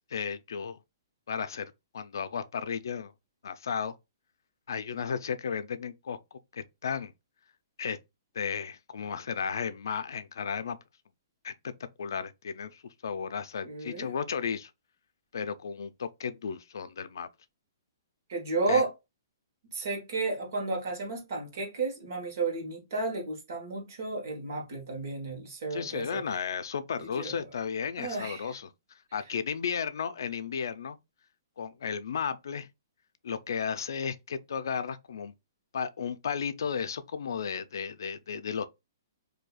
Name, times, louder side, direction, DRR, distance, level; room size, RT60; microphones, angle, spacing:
voice 1, 0.1-0.8 1.3-3.1 3.4-3.9 4.7-7.1 7.8-8.0 8.3-10.8 11.4-11.7 12.0-14.7 15.3-17.3 18.7-18.8 25.7-28.7 29.1-31.0 31.6-32.7 33.2-35.3 35.7-38.6, left 6 dB, 70° left, 0.4 m, -34 dB
voice 2, 13.6-14.1 18.3-18.9 19.7-26.2 27.0-27.4 28.0-28.5, right 3 dB, 45° right, 1.3 m, -32 dB
4.1 x 2.7 x 2.3 m
hypercardioid pair, 175°, 2 cm